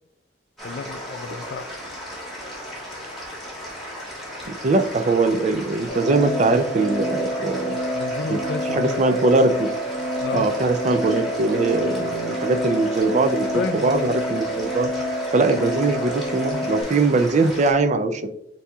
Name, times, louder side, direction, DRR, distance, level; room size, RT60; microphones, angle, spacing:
voice 1, 0.6-1.8 7.9-9.2 10.2-10.5 13.5-14.1, left 4 dB, 65° left, 9 dB, 0.3 m, -31 dB
sound 1, 0.6-17.7, equal, ahead, 1.5 m, -36 dB
voice 2, 4.4-7.8 8.3-8.4 8.7-9.7 10.3-14.9 15.3-18.3, right 3 dB, 40° right, 9 dB, 0.4 m, -21 dB
sound 2, 5.9-16.8, equal, 15° right, 0.9 m, -28 dB
8.0 x 2.8 x 2.3 m, 0.80 s
head